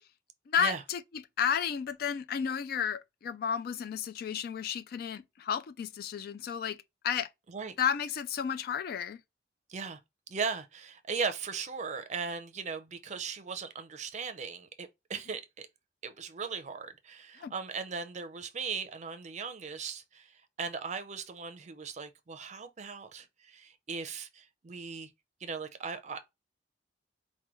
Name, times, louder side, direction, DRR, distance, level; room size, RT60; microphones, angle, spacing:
voice 1, 0.5-1.0 1.4-6.8 7.0-7.3 7.8-9.2 17.4-17.5, left 8 dB, 55° left, 0.3 m, -32 dB
voice 2, 10.3-15.7 16.0-25.1 25.4-26.2, right 5 dB, 40° right, 0.5 m, -38 dB
4.7 x 2.2 x 3.0 m
head